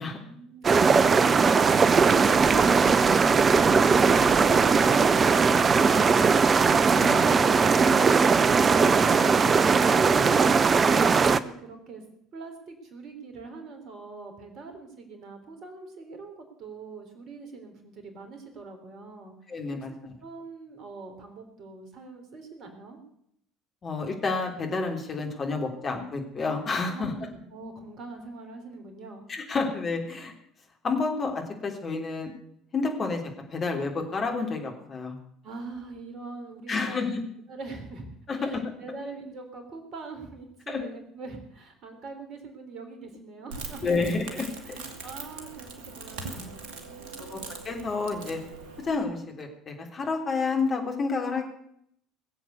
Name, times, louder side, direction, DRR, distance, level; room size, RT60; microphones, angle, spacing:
sound 1, 0.6-11.4, right 5 dB, 30° right, 0.7 m, -20 dB
voice 1, 6.9-7.3 8.8-8.9 19.5-20.1 23.8-27.1 29.3-30.3 30.8-32.3 32.7-33.2 33.5-35.2 36.7-37.2 38.3-38.4 40.7-40.8 43.8-44.8 46.4-46.5 47.3-47.4 47.6-48.4 48.8-51.4, left 4 dB, 35° left, 2 dB, 3.6 m, -29 dB
voice 2, 12.3-19.3 20.2-23.0 26.9-29.2 35.4-37.1 37.5-38.1 38.4-44.1 44.7-47.6, right 3 dB, 45° right, 5 dB, 3.7 m, -43 dB
Crackle, 43.5-49.0, right 4 dB, 65° right, 2.1 m, -41 dB
20.0 x 7.8 x 8.2 m, 0.72 s
figure-of-eight pair, 60°, 0 cm